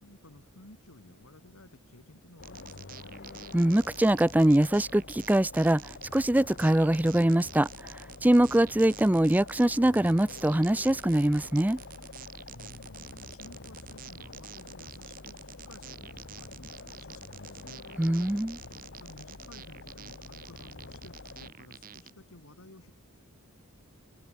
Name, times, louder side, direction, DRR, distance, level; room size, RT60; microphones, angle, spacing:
voice 1, 0.0-3.2 12.5-15.4 15.6-17.8 18.9-22.9, left 1 dB, 80° left, 3.3 m, -54 dB
sound 1, 2.4-21.5, left 3 dB, 55° left, 1.3 m, -47 dB
sound 2, 2.4-22.1, right 9 dB, 40° right, 1.0 m, -48 dB
voice 2, 3.5-11.8 18.0-18.6, right 1 dB, 10° right, 0.4 m, -23 dB
open air
head